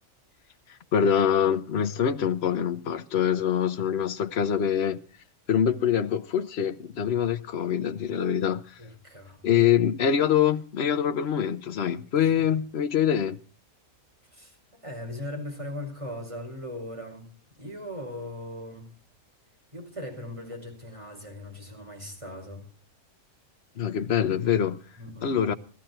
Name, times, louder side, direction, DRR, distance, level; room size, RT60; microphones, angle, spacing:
voice 1, 0.9-5.0 5.5-8.6 9.4-13.4 23.8-24.8 25.2-25.5, left 8 dB, 50° left, 1.1 m, -24 dB
voice 2, 8.8-9.7 12.1-12.5 14.3-14.6 14.8-18.9 19.7-22.7 25.0-25.4, left 1 dB, 20° right, 5.2 m, -39 dB
16.0 x 13.0 x 4.4 m
omnidirectional pair, 1.5 m